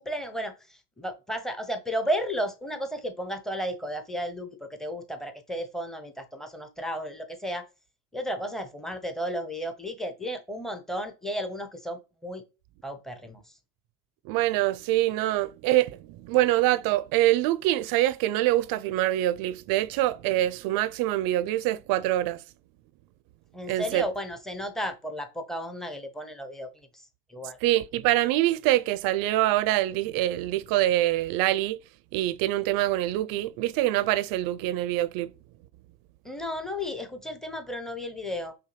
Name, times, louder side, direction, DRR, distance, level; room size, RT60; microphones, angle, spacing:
voice 1, 0.0-7.7 8.1-12.4 12.8-13.4 23.5-27.6 36.2-38.5, equal, ahead, 0.6 m, -33 dB
voice 2, 14.3-22.4 23.7-24.0 27.6-31.8 32.1-35.3, right 15 dB, 50° right, 0.4 m, -25 dB
5.5 x 2.2 x 3.2 m
hypercardioid pair, 95°, 49 cm